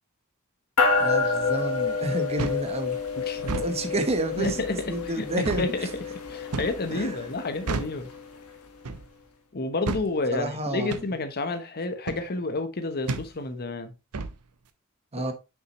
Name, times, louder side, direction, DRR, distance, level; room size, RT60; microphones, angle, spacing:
sound 1, 0.8-8.5, left 4 dB, 85° left, 1.5 m, -29 dB
voice 1, 1.0-3.0 3.6-5.9 6.9-7.3 10.3-11.0 15.1-15.3, right 1 dB, 30° right, 1.0 m, -30 dB
sound 2, 2.4-2.7 3.4-3.7 4.4-4.7 5.4-5.7 6.5-6.8 7.7-8.0 8.8-9.1 9.9-10.1 10.9-11.1 12.1-12.3 13.1-13.3 14.1-14.4, right 3 dB, 85° right, 0.7 m, -31 dB
voice 2, 3.3-3.6 4.3-4.7 5.2-5.3 5.6-8.1 9.5-13.9 15.2-15.3, left 3 dB, 45° left, 0.9 m, -30 dB
6.3 x 5.5 x 3.0 m
head